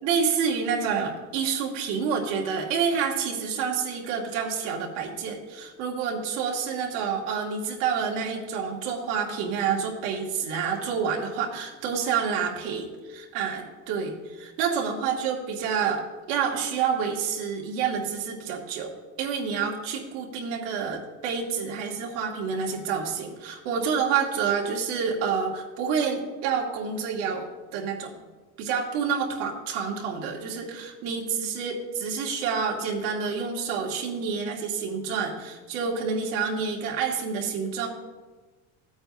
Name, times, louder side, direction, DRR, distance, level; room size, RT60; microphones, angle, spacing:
voice 1, 0.0-18.9 19.2-28.2 28.6-37.9, right 6 dB, 75° right, -1 dB, 2.1 m, -28 dB
16.0 x 8.7 x 2.6 m, 1.3 s
cardioid pair, 180°, 34 cm